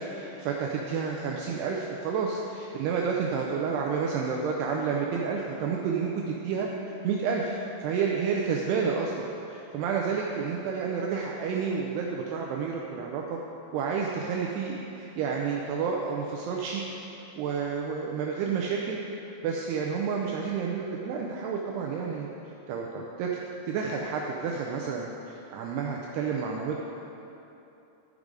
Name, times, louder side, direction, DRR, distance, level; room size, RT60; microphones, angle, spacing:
voice 1, 0.0-6.7 7.0-13.4 13.7-16.8 17.4-19.0 19.4-23.3 23.7-26.8, right 5 dB, 85° right, -1 dB, 2.3 m, -30 dB
12.5 x 5.2 x 4.8 m, 3.0 s
omnidirectional pair, 5.3 m